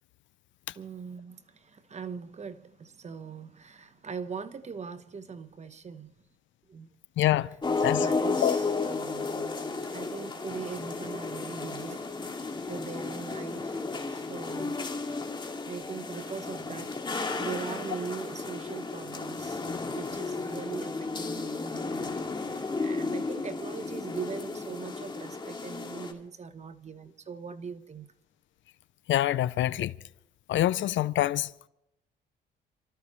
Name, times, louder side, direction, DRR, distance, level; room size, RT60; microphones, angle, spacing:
voice 1, 0.8-6.1 6.7-6.9 7.9-9.6 9.9-12.0 12.7-13.8 14.1-14.8 15.7-28.1, right 5 dB, 35° right, 1.0 m, -41 dB
voice 2, 7.2-7.5 7.8-8.1 8.4-8.6 29.1-29.9 30.5-31.5, left 13 dB, 70° left, 0.5 m, -25 dB
sound 1, 7.6-26.1, left 3 dB, 25° left, 2.2 m, -33 dB
28.0 x 13.5 x 3.1 m
cardioid pair, 90°, 20 cm